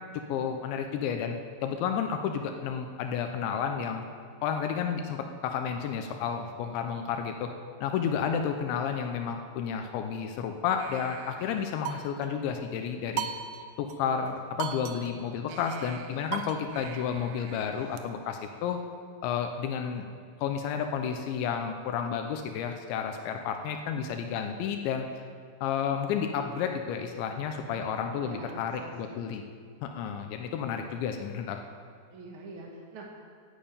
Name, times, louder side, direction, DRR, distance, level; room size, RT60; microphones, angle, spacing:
voice 1, 0.1-1.4 1.6-4.0 4.4-7.5 7.8-13.3 13.8-18.8 19.2-20.0 20.4-25.1 25.6-29.4 29.8-31.6, left 7 dB, 85° left, 5 dB, 3.1 m, -31 dB
sound 1, 10.8-12.4 13.2-14.0 14.3-14.4 14.6-18.0, right 9 dB, 75° right, 2.8 m, -39 dB
voice 2, 27.6-29.2 30.4-31.1 32.1-33.2, right 2 dB, 50° right, -2 dB, 1.5 m, -47 dB
12.0 x 10.5 x 8.7 m, 2.1 s
omnidirectional pair, 5.2 m